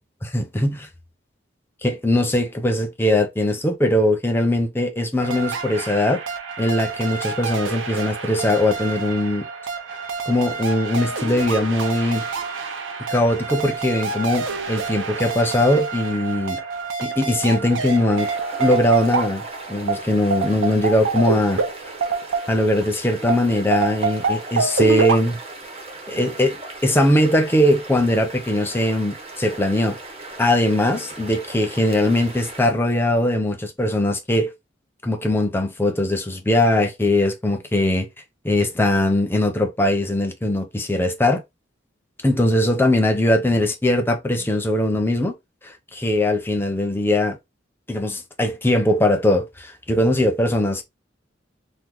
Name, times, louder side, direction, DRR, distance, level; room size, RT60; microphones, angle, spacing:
voice 1, 0.2-0.8 1.8-6.2 6.6-9.4 10.3-12.2 13.1-16.6 17.0-18.3 18.6-19.4 19.7-21.6 22.5-25.4 26.1-30.0 30.4-34.5 35.0-38.1 38.4-41.4 42.2-45.3 45.6-47.4 47.9-50.8, left 1 dB, 10° left, 0.6 m, -20 dB
sound 1, 5.2-22.8 23.3-25.2, right 4 dB, 80° right, 0.7 m, -27 dB
sound 2, 18.1-32.7, right 2 dB, 35° right, 0.8 m, -38 dB
3.0 x 2.1 x 3.5 m
head